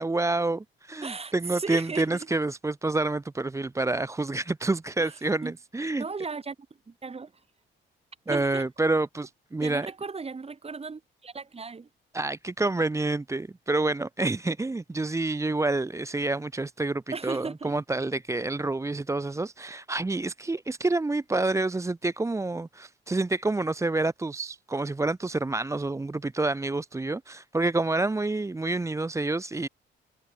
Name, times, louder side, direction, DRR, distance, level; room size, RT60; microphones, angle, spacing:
voice 1, 0.0-6.0 8.3-9.9 12.1-29.7, right 2 dB, 15° right, 0.8 m, -28 dB
voice 2, 1.0-2.1 5.0-5.1 5.4-5.5 6.0-6.6 6.9-7.3 8.3-8.6 9.6-11.9 17.1-17.8, right 4 dB, 30° right, 4.1 m, -36 dB
cardioid pair, 90°, 20 cm